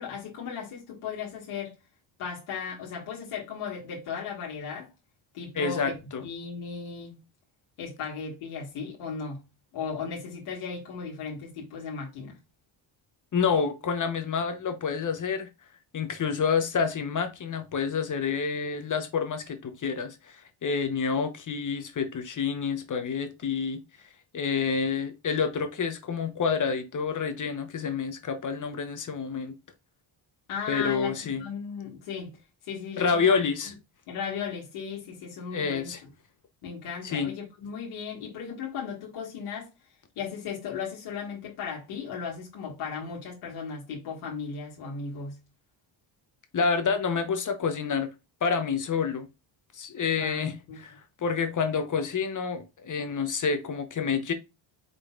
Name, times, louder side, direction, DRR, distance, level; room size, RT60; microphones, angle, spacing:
voice 1, 0.0-1.8 2.2-4.9 5.3-7.2 7.8-9.4 9.7-12.4 30.5-32.3 32.6-33.7 34.1-35.9 36.6-39.7 40.2-45.4 50.2-50.8, left 6 dB, 85° left, 1.7 m, -36 dB
voice 2, 5.6-6.2 13.3-15.5 15.9-23.8 24.3-29.5 30.7-31.4 33.0-33.7 35.5-36.0 37.0-37.3 46.5-48.1 48.4-49.3 49.7-51.0 51.2-54.3, left 5 dB, 40° left, 0.8 m, -28 dB
5.1 x 3.9 x 2.3 m
cardioid pair, 105°, 49 cm